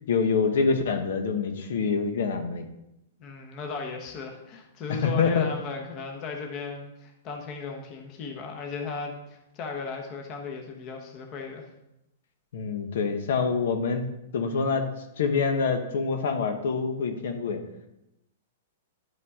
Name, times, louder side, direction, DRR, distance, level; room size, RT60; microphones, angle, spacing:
voice 1, 0.1-2.7 4.9-5.5 12.5-14.0 14.3-14.8 15.2-17.6, left 5 dB, 70° left, 6 dB, 1.1 m, -26 dB
voice 2, 3.2-11.7, left 5 dB, 25° left, 3 dB, 1.0 m, -36 dB
11.0 x 5.5 x 3.6 m, 0.88 s
hypercardioid pair, 170°, 0 cm